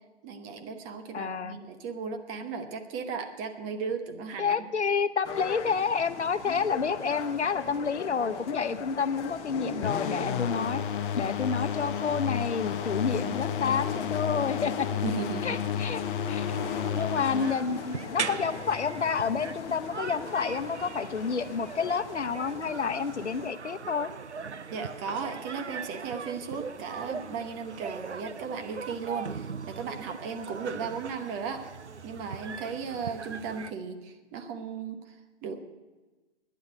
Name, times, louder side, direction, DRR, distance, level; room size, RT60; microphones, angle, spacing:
voice 1, 0.2-4.7 13.2-13.5 15.0-15.6 16.5-16.8 24.7-31.7 32.0-35.2 35.4-35.7, right 5 dB, 25° right, 6 dB, 1.1 m, -36 dB
voice 2, 1.1-1.6 4.4-10.8 11.1-14.9 15.4-16.0 16.3-16.5 17.0-24.1, left 5 dB, 80° left, 10 dB, 0.9 m, -29 dB
sound 1, 5.2-23.5, left 6 dB, 20° left, 0.9 m, -39 dB
sound 2, 9.8-17.5, left 8 dB, 50° left, 0.7 m, -32 dB
sound 3, 16.5-33.7, right 5 dB, 90° right, 0.7 m, -40 dB
11.0 x 9.7 x 9.2 m, 1.2 s
figure-of-eight pair, 130°, 34 cm